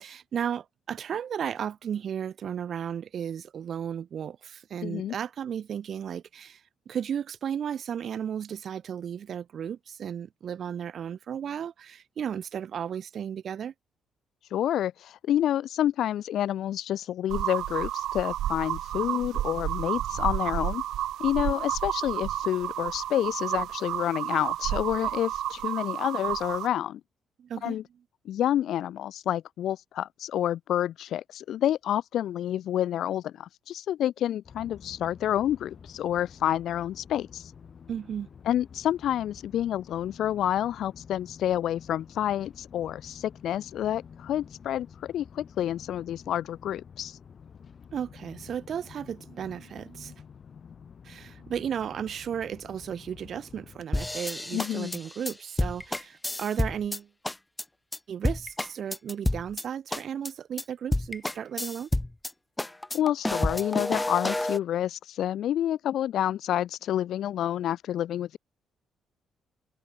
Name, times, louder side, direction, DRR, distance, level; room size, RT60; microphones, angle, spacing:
voice 1, 0.0-13.7 27.4-27.8 37.9-38.3 47.9-50.1 51.0-57.1 58.1-61.9, right 8 dB, 55° right, 1.5 m, -34 dB
voice 2, 4.8-5.1 14.5-20.8 21.2-27.0 27.6-27.8 28.3-37.5 38.5-47.2 54.5-55.0 62.9-68.4, left 11 dB, 70° left, 0.5 m, -29 dB
sound 1, 17.3-26.7, right 12 dB, 80° right, 0.4 m, -31 dB
sound 2, 34.4-53.9, left 6 dB, 45° left, 2.5 m, -49 dB
sound 3, 53.9-57.0 57.2-57.6 57.9-58.0 58.2-59.6 59.9-60.3 60.6-60.7 60.9-62.3 62.6-64.6, left 1 dB, 10° left, 0.7 m, -29 dB
cardioid pair, 115°, 0 cm